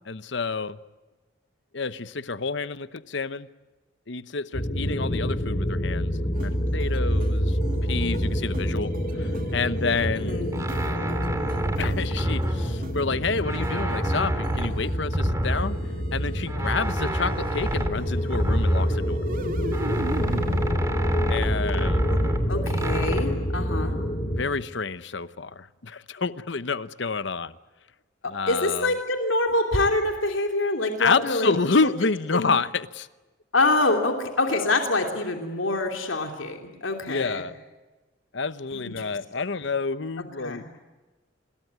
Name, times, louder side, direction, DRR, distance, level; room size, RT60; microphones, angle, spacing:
voice 1, 0.1-0.8 1.7-3.5 4.1-7.6 7.9-8.9 9.2-10.4 11.8-15.8 16.1-19.2 21.3-22.0 24.2-27.5 28.2-28.9 31.0-33.1 37.1-37.5 38.3-40.6, left 4 dB, 60° left, 14 dB, 0.9 m, -28 dB
sound 1, 4.5-24.4, equal, 35° left, 3.7 m, -27 dB
sound 2, 6.3-15.0 15.4-20.7, right 1 dB, 45° right, 2.7 m, -40 dB
sound 3, 9.9-13.1 13.4-16.0 16.5-19.4 19.7-23.2, right 1 dB, 15° right, 2.6 m, -29 dB
voice 2, 10.2-10.6 22.1-22.2 22.5-24.0 28.2-31.5 31.8-31.9 32.3-32.5 33.5-37.4 38.7-39.2 40.4-40.7, left 2 dB, 75° left, 4 dB, 3.0 m, -26 dB
27.0 x 21.5 x 9.6 m, 1.2 s
head